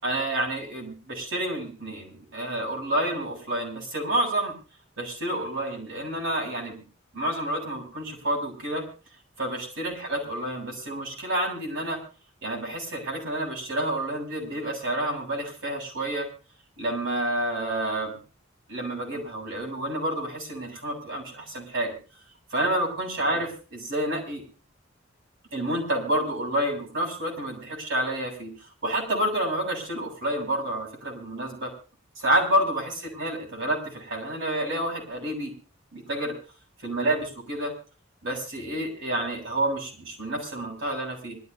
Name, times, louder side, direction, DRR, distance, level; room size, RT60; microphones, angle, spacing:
voice 1, 0.0-4.5 5.0-6.8 7.1-8.8 9.4-12.0 12.4-16.3 16.8-18.2 18.7-22.0 22.5-24.4 25.5-28.5 28.8-31.7 32.2-35.5 35.9-36.3 36.8-37.7 38.2-41.4, right 1 dB, 65° right, -1 dB, 7.9 m, -29 dB
25.5 x 13.5 x 2.8 m, 0.36 s
head